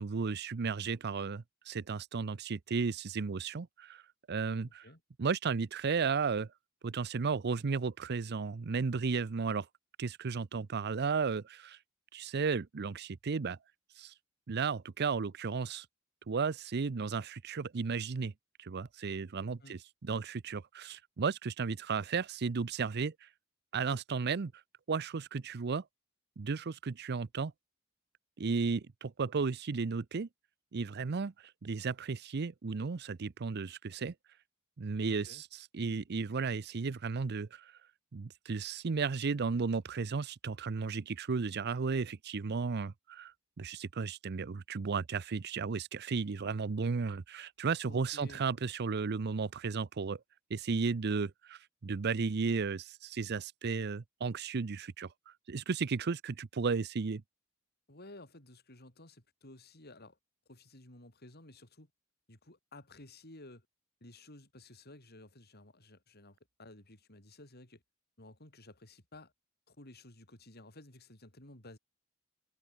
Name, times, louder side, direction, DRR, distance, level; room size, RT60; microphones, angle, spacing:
voice 1, 0.0-4.0 4.3-4.8 5.2-6.5 6.8-9.7 10.0-11.8 12.1-13.6 14.0-14.1 14.5-15.9 16.3-18.3 18.6-23.3 23.7-24.5 24.9-25.8 26.4-27.5 28.4-30.3 30.7-31.3 31.6-34.1 34.8-37.7 38.1-50.2 50.5-57.2, right 5 dB, 55° right, 0.6 m, -34 dB
voice 2, 4.6-5.0 19.6-19.8 35.1-35.4 47.8-48.4 57.9-60.2 60.5-61.9 62.3-63.7 64.0-67.8 68.2-69.3 69.7-71.8, left 2 dB, 50° left, 6.0 m, -54 dB
head